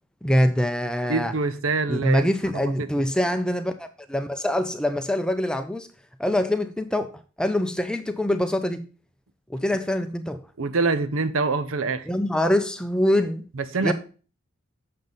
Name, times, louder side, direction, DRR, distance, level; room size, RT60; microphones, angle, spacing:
voice 1, 0.2-1.3 1.9-5.9 6.2-7.1 7.4-8.8 9.5-10.4 12.1-13.4 13.8-13.9, left 1 dB, 5° left, 0.5 m, -24 dB
voice 2, 1.1-2.9 10.6-12.1 13.5-13.9, right 3 dB, 85° right, 0.7 m, -25 dB
7.3 x 6.5 x 3.9 m
head